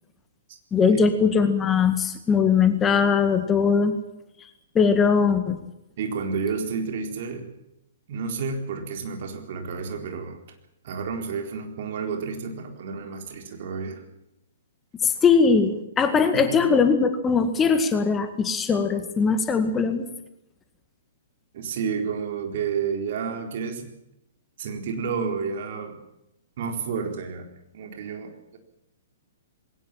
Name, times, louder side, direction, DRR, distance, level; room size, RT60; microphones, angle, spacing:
voice 1, 0.7-3.9 4.8-5.6 15.0-20.0, left 5 dB, 15° left, 8 dB, 1.9 m, -20 dB
voice 2, 6.0-7.5 8.1-10.4 10.8-14.0 16.3-16.6 21.5-23.9 24.6-26.0 26.6-27.5 27.7-28.6, right 5 dB, 50° right, 4 dB, 4.0 m, -30 dB
21.0 x 18.0 x 8.9 m, 0.86 s
figure-of-eight pair, 115°, 0 cm